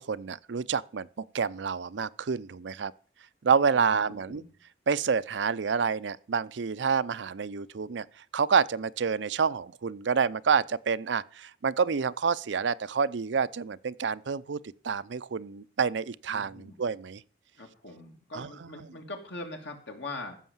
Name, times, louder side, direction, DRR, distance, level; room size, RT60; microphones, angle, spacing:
voice 1, 0.0-2.9 3.4-4.4 4.9-8.1 8.3-14.6 14.8-17.2 18.3-18.5, right 6 dB, 85° right, 0.5 m, -28 dB
voice 2, 16.3-16.8 17.6-20.4, left 2 dB, 75° left, 2.9 m, -42 dB
15.0 x 6.3 x 7.2 m
head